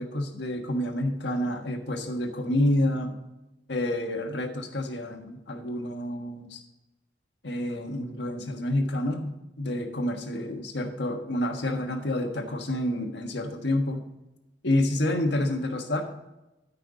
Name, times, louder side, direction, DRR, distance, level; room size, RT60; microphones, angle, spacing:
voice 1, 0.0-3.1 3.7-6.6 7.4-14.0 14.6-16.0, left 1 dB, 80° left, 4 dB, 1.5 m, -28 dB
13.5 x 5.8 x 4.0 m, 0.99 s
head